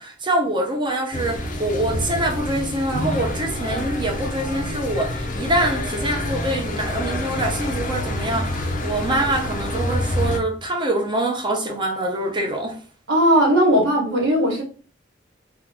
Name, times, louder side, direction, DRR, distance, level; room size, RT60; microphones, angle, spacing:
voice 1, 0.0-12.8, right 1 dB, 25° right, 0.7 m, -25 dB
sound 1, 1.1-10.4, left 1 dB, 45° left, 0.5 m, -27 dB
voice 2, 13.1-14.6, equal, 90° right, 1.3 m, -17 dB
2.8 x 2.3 x 3.5 m
head